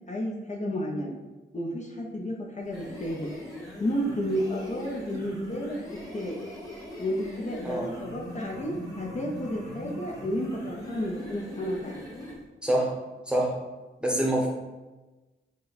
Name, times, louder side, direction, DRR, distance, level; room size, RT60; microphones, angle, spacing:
voice 1, 0.1-1.1 1.5-3.3 3.8-5.8 6.1-6.4 7.0-12.0, equal, 35° left, -2 dB, 0.7 m, -31 dB
sound 1, 2.6-12.4, equal, 15° left, 1.3 m, -41 dB
voice 2, 12.6-13.0 13.3-13.6 14.0-14.5, right 1 dB, 5° right, -1 dB, 0.9 m, -25 dB
5.0 x 2.1 x 4.1 m, 1.1 s
wide cardioid pair, 95°, 20 cm